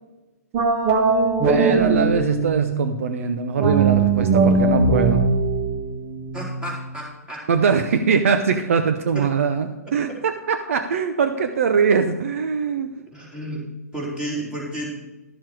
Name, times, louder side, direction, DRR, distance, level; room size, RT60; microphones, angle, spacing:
sound 1, 0.5-2.8 3.6-6.9, right 3 dB, 35° right, 1.6 m, -20 dB
voice 1, 1.4-5.2 7.5-12.9, right 6 dB, 55° right, 7 dB, 0.8 m, -22 dB
voice 2, 6.3-7.4 9.1-9.2 10.1-10.2 13.1-13.6 13.9-14.9, right 1 dB, 10° right, -4 dB, 3.9 m, -32 dB
12.0 x 7.3 x 4.8 m, 1.1 s
figure-of-eight pair, 120°, 9 cm